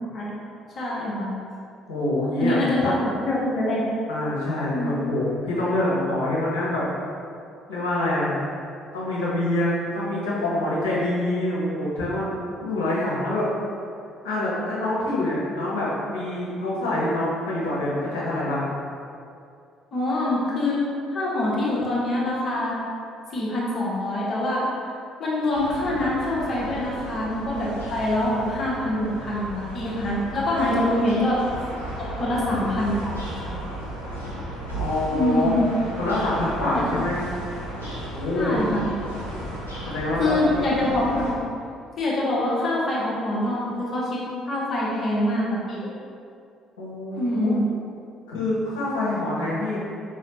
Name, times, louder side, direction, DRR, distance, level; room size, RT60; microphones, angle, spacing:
voice 1, 0.7-1.3 2.4-3.8 4.7-5.0 19.9-20.8 21.1-22.8 23.3-24.6 25.2-31.4 32.0-33.6 35.1-35.6 36.6-36.8 38.3-38.9 40.2-41.4 42.0-45.9 47.1-47.6, left 1 dB, 40° left, -6 dB, 1.0 m, -25 dB
voice 2, 1.9-2.9 4.1-6.8 7.7-8.3 8.9-12.3 12.6-13.5 14.2-18.7 34.7-35.5 36.0-37.2 38.1-38.6 39.9-40.4 46.8-47.5 48.3-49.8, left 1 dB, 70° left, -8 dB, 1.0 m, -25 dB
sound 1, 25.5-41.3, right 1 dB, 85° left, 0.6 m, -34 dB
4.7 x 3.1 x 2.9 m, 2.4 s
figure-of-eight pair, 50°, 0 cm